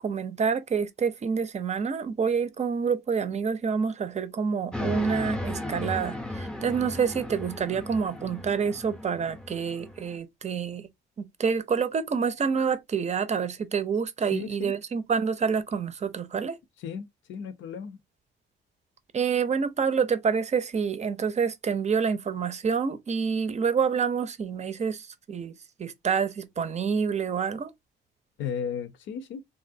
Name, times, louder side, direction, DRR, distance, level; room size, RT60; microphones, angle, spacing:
voice 1, 0.0-10.9 11.2-16.6 19.1-25.5 25.8-27.7, right 6 dB, 35° right, 0.5 m, -27 dB
sound 1, 4.7-10.2, left 1 dB, 5° left, 0.6 m, -35 dB
voice 2, 14.3-14.8 16.8-18.0 28.4-29.4, left 7 dB, 75° left, 0.6 m, -35 dB
3.2 x 2.5 x 2.6 m
cardioid pair, 90°, 20 cm